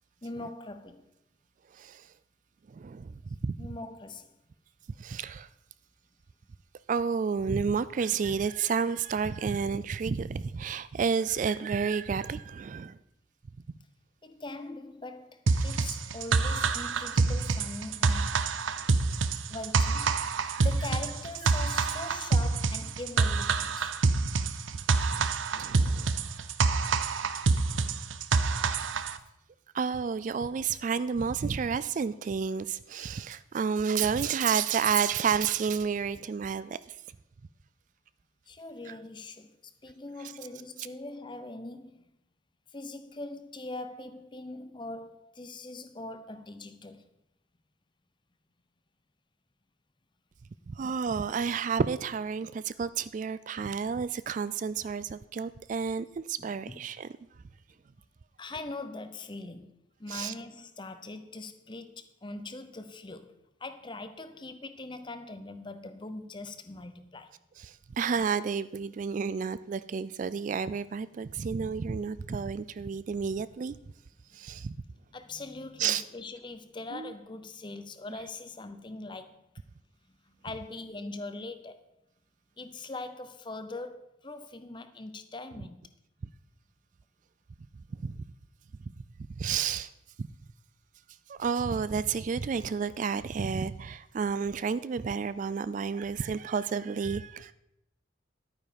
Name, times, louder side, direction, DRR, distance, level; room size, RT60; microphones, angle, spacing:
voice 1, 0.2-1.1 3.6-4.4 14.2-18.5 19.5-24.0 38.5-42.1 42.7-47.1 56.4-56.8 58.4-67.3 74.3-74.7 75.1-79.6 80.1-81.8 82.6-85.9, left 2 dB, 25° left, 0.8 m, -42 dB
voice 2, 1.7-2.1 2.7-3.6 5.0-5.5 6.9-13.0 19.0-19.1 20.5-20.7 21.4-21.9 24.4-24.5 25.1-25.2 25.5-26.1 28.6-28.9 29.7-36.8 38.9-39.0 50.7-57.1 60.1-60.3 67.6-73.8 74.3-74.7 75.8-76.0 76.9-77.1 88.0-88.2 89.4-89.9 90.2-90.3 91.3-97.5, right 6 dB, 40° right, 0.3 m, -31 dB
sound 1, 15.5-29.2, right 4 dB, 85° right, 0.7 m, -27 dB
11.5 x 9.1 x 5.1 m
head